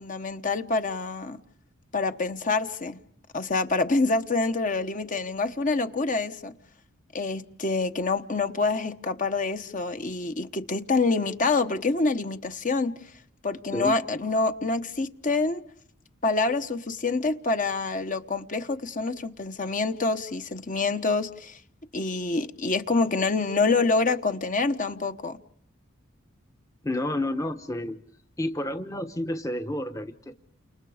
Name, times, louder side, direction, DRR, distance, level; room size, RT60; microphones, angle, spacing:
voice 1, 0.0-1.4 1.9-3.0 3.3-6.5 7.1-12.9 13.4-15.6 16.2-21.6 21.9-25.4, left 3 dB, 40° left, 1.2 m, -26 dB
voice 2, 26.8-28.0 28.4-30.3, left 1 dB, 15° left, 1.0 m, -30 dB
30.0 x 27.5 x 5.0 m
head